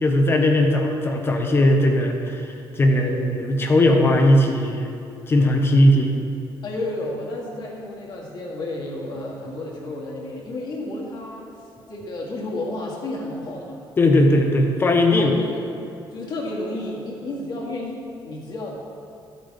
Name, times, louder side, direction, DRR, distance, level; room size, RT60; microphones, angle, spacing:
voice 1, 0.0-2.5 2.8-4.9 5.3-6.1 14.0-15.4, left 1 dB, 25° left, 3 dB, 0.9 m, -18 dB
voice 2, 2.8-3.2 6.6-11.4 11.9-13.8 15.1-15.7 16.1-18.7, left 2 dB, 55° left, -3 dB, 2.0 m, -32 dB
12.5 x 9.3 x 3.5 m, 2.6 s
cardioid pair, 170°, 9 cm